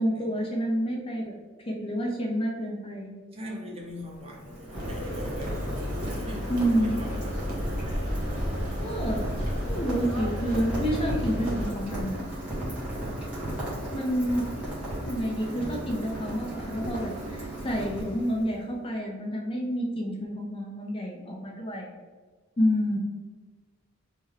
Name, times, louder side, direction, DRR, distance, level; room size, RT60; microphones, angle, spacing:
voice 1, 0.0-1.3 1.7-3.1 6.5-7.0 8.8-12.2 13.9-14.4 15.0-21.9 22.6-23.0, equal, 25° left, -1 dB, 0.4 m, -29 dB
voice 2, 3.3-7.4, equal, 30° right, -1 dB, 0.5 m, -41 dB
Rain, 3.8-18.6, right 1 dB, 5° right, 0.9 m, -35 dB
sound 1, 4.7-11.7, equal, 85° right, 0.9 m, -34 dB
sound 2, 12.1-17.4, right 2 dB, 55° right, 0.8 m, -49 dB
3.3 x 2.1 x 3.4 m, 1.4 s
head